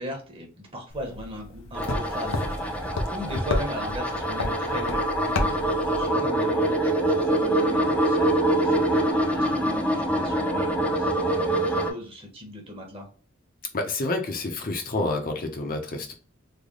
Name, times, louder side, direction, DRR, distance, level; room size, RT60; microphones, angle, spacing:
voice 1, 0.0-13.1, equal, 30° right, 1.0 m, -38 dB
sound 1, 0.9-6.1, left 2 dB, 85° left, 0.7 m, -32 dB
sound 2, 1.8-11.9, right 1 dB, 5° left, 0.5 m, -25 dB
voice 2, 13.7-16.1, left 2 dB, 45° left, 0.7 m, -28 dB
3.3 x 2.1 x 3.8 m
head